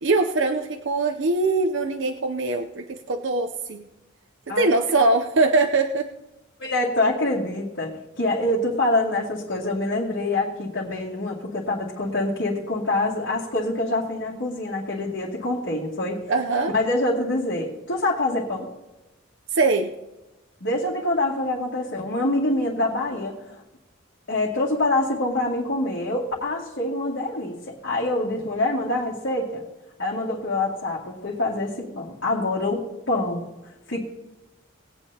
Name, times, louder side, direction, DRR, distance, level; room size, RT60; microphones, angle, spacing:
voice 1, 0.0-3.8 4.6-6.1 16.3-16.7 19.5-19.9, right 3 dB, 65° right, 5 dB, 0.6 m, -22 dB
voice 2, 6.6-16.2 16.7-18.7 20.6-23.6 24.3-29.6 30.0-33.5 33.9-34.0, left 2 dB, 70° left, -7 dB, 2.4 m, -25 dB
20.0 x 9.1 x 2.8 m, 1.0 s
head